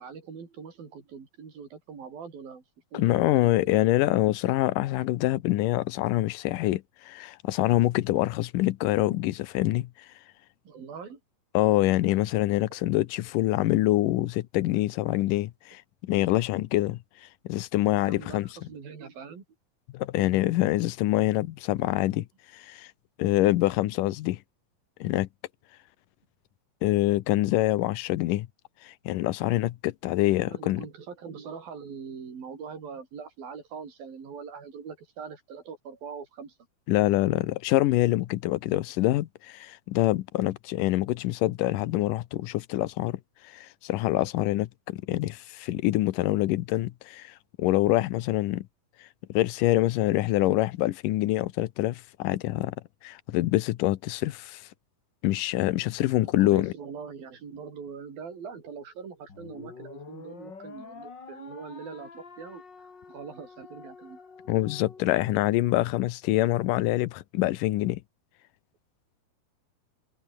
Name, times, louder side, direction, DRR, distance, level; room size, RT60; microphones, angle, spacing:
voice 1, 0.0-2.6 2.9-3.8 10.6-11.2 12.7-12.8 18.0-19.4 30.4-36.6 56.2-64.2, right 6 dB, 75° right, 6.1 m, -42 dB
voice 2, 2.9-9.9 11.5-17.0 17.5-18.5 19.9-22.3 22.5-22.9 23.2-24.4 25.0-25.3 26.8-28.5 28.8-30.9 36.9-48.7 49.0-52.8 53.0-54.7 55.2-56.7 64.5-68.0, left 16 dB, 70° left, 2.3 m, -25 dB
sound 1, 59.3-65.8, left 4 dB, 30° left, 3.2 m, -47 dB
omnidirectional pair, 4.2 m